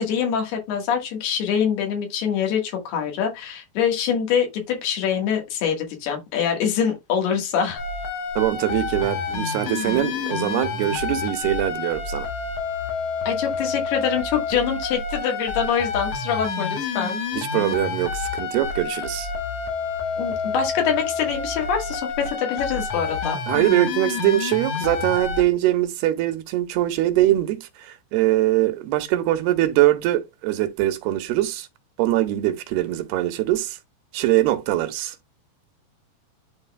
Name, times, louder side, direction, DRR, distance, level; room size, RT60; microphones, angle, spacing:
voice 1, 0.0-7.8 13.3-17.2 20.2-23.4, left 7 dB, 85° left, 3.5 m, -24 dB
sound 1, 7.8-25.4, left 5 dB, 65° left, 1.6 m, -28 dB
voice 2, 8.4-12.3 17.3-19.3 23.5-31.7 32.0-33.8 34.1-35.2, right 14 dB, 90° right, 2.8 m, -22 dB
11.0 x 4.0 x 2.2 m
omnidirectional pair, 4.5 m